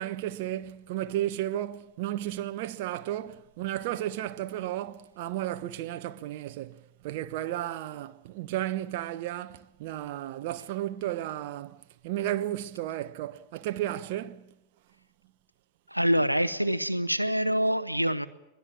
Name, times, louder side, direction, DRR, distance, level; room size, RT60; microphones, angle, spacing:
voice 1, 0.0-14.5, right 13 dB, 50° right, 1.0 m, -33 dB
voice 2, 15.9-18.3, equal, 90° right, 1.0 m, -25 dB
23.0 x 20.5 x 9.0 m
figure-of-eight pair, 90°, 0 cm